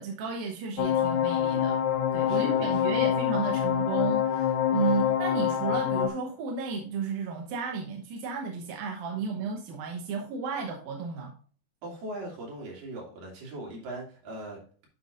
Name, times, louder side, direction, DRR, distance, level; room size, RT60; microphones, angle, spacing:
voice 1, 0.0-1.8 2.1-11.4, right 5 dB, 70° right, 1 dB, 2.4 m, -33 dB
sound 1, 0.8-6.1, left 9 dB, 80° left, 2.6 m, -26 dB
voice 2, 2.3-3.0 9.1-9.5 11.8-14.9, right 1 dB, 55° right, -1 dB, 4.1 m, -40 dB
9.5 x 6.8 x 2.6 m, 0.43 s
omnidirectional pair, 5.1 m